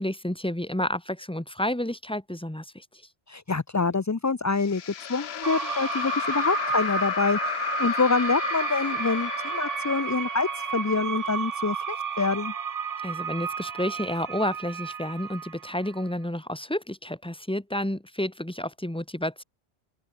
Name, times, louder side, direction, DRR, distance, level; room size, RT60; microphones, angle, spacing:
voice 1, 0.0-2.8 13.0-19.4, left 1 dB, 5° left, 1.4 m, -30 dB
voice 2, 3.3-12.5, left 4 dB, 30° left, 0.3 m, -26 dB
sound 1, 4.6-11.9, left 9 dB, 80° left, 1.1 m, -33 dB
sound 2, 5.4-16.1, right 7 dB, 40° right, 0.7 m, -32 dB
open air
omnidirectional pair, 1.1 m